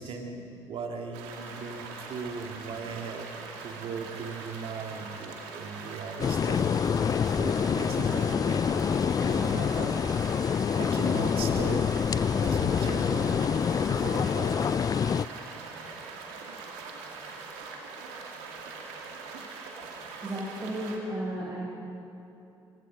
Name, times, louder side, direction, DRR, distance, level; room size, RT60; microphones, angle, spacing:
voice 1, 0.0-6.8 7.3-10.0 10.8-11.9 12.4-14.8, right 5 dB, 55° right, 3 dB, 2.5 m, -38 dB
sound 1, 1.1-21.0, right 4 dB, 75° right, 2.4 m, -42 dB
sound 2, 6.2-15.3, left 7 dB, 35° left, 0.4 m, -26 dB
voice 2, 20.2-21.7, right 1 dB, 25° right, -6 dB, 6.9 m, -33 dB
25.0 x 24.5 x 5.3 m, 2.8 s
hypercardioid pair, 50°, 11 cm